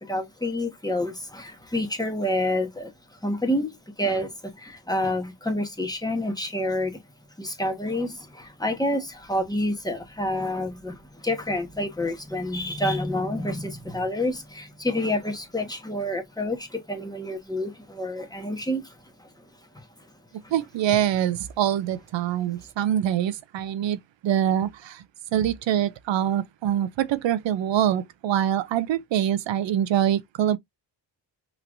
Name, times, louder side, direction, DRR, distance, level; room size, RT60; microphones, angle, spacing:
voice 1, 0.0-7.0 7.4-19.3 19.7-19.9 20.4-20.5, left 1 dB, 10° left, 1.2 m, -28 dB
voice 2, 20.5-25.0 25.3-30.6, right 10 dB, 70° right, 0.6 m, -24 dB
5.8 x 3.1 x 2.5 m
cardioid pair, 120°, 46 cm